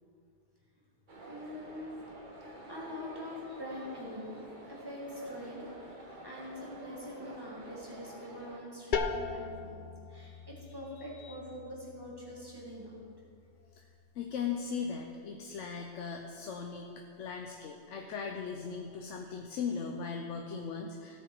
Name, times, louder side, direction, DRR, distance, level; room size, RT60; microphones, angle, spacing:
sound 1, 1.1-8.6, right 1 dB, 45° right, 1.4 m, -49 dB
voice 1, 1.3-1.9 2.7-4.4 4.7-13.0, left 1 dB, 20° right, -5 dB, 2.4 m, -44 dB
sound 2, 8.9-14.5, left 5 dB, 50° left, 0.7 m, -40 dB
voice 2, 11.0-11.3 13.7-13.8 14.1-21.2, left 6 dB, 90° left, 2 dB, 1.1 m, -38 dB
16.5 x 7.1 x 4.6 m, 2.4 s
omnidirectional pair, 1.2 m